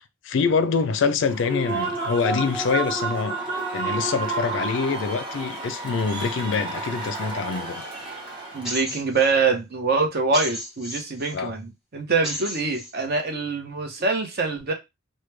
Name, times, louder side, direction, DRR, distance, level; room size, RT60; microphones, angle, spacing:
voice 1, 0.0-3.4 3.7-7.8 11.3-11.5, left 5 dB, 65° left, 0.4 m, -25 dB
Human voice / Cheering / Applause, 1.2-8.9, right 3 dB, 25° right, 0.9 m, -30 dB
voice 2, 8.5-14.7, right 4 dB, 50° right, 0.8 m, -24 dB
sound 1, 8.6-9.3 10.3-11.3 12.2-12.9, equal, ahead, 1.2 m, -33 dB
3.1 x 2.2 x 3.3 m
head